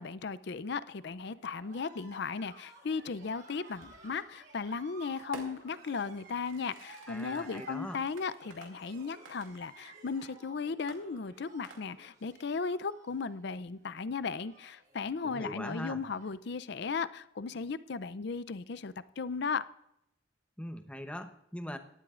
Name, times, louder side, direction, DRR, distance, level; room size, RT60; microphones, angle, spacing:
voice 1, 0.0-19.6, left 5 dB, 55° left, 16 dB, 0.5 m, -36 dB
sound 1, 1.0-16.5, right 2 dB, 55° right, 3.1 m, -57 dB
Fireworks, 3.8-4.2 5.3-10.4 10.9-12.2, right 4 dB, 80° right, 2.4 m, -52 dB
voice 2, 7.1-8.0 15.2-16.0 20.6-21.8, equal, 5° left, 7 dB, 0.8 m, -41 dB
17.5 x 12.0 x 2.5 m, 0.76 s
head